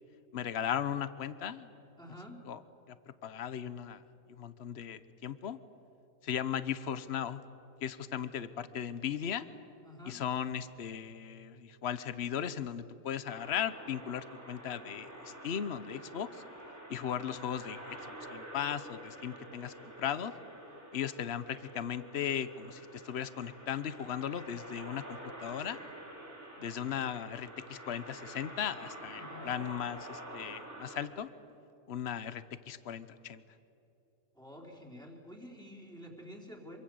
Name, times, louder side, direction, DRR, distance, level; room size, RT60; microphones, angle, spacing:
voice 1, 0.3-1.7 2.4-2.6 2.9-4.0 4.3-5.6 6.2-7.4 7.8-9.5 10.0-16.4 16.9-20.3 20.9-25.8 26.6-31.3 31.9-33.4, left 9 dB, 55° left, 13 dB, 1.2 m, -37 dB
voice 2, 2.0-2.4 9.8-10.2 29.1-29.6 34.3-36.8, equal, 5° left, -2 dB, 3.8 m, -49 dB
sound 1, 13.2-31.0, right 1 dB, 55° right, 4.9 m, -48 dB
26.5 x 25.0 x 7.9 m, 2.8 s
omnidirectional pair, 1.4 m